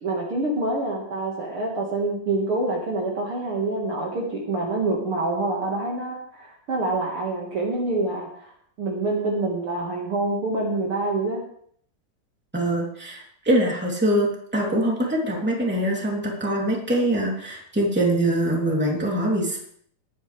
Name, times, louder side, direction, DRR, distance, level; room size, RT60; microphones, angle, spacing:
voice 1, 0.0-8.5 8.8-11.4, right 2 dB, 50° right, -2 dB, 2.6 m, -26 dB
voice 2, 12.5-14.3 14.5-19.6, right 1 dB, 5° right, -3 dB, 2.9 m, -23 dB
19.5 x 10.0 x 3.4 m, 0.63 s
omnidirectional pair, 3.4 m